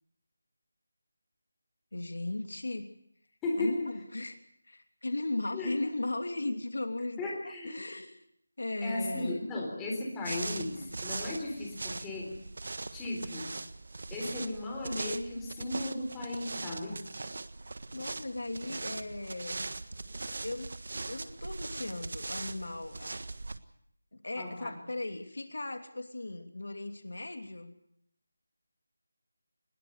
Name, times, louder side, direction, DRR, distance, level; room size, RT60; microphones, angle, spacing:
voice 1, 1.9-2.9 3.6-4.4 4.7-8.2 8.6-9.4 17.9-19.7 20.4-20.7 21.1-23.2 24.1-27.7, left 2 dB, 75° left, 5 dB, 2.9 m, -37 dB
voice 2, 3.4-3.9 5.5-5.7 7.2-7.8 8.8-12.4 12.9-13.6 14.1-17.0 24.4-24.7, left 2 dB, 10° left, -2 dB, 3.9 m, -35 dB
sound 1, 10.2-23.6, right 3 dB, 60° right, 1.5 m, -40 dB
21.5 x 21.0 x 6.7 m, 0.71 s
figure-of-eight pair, 170°, 0 cm